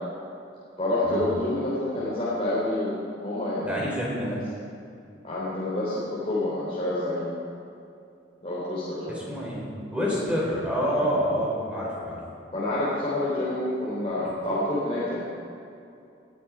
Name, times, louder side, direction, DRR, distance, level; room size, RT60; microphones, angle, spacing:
voice 1, 0.8-3.8 4.2-4.3 5.2-7.3 8.4-9.2 10.0-10.1 10.8-11.0 12.5-15.2, left 1 dB, 30° left, -9 dB, 3.5 m, -28 dB
voice 2, 3.6-4.4 9.1-12.2, equal, 5° right, -5 dB, 4.3 m, -28 dB
20.5 x 13.5 x 4.9 m, 2.6 s
head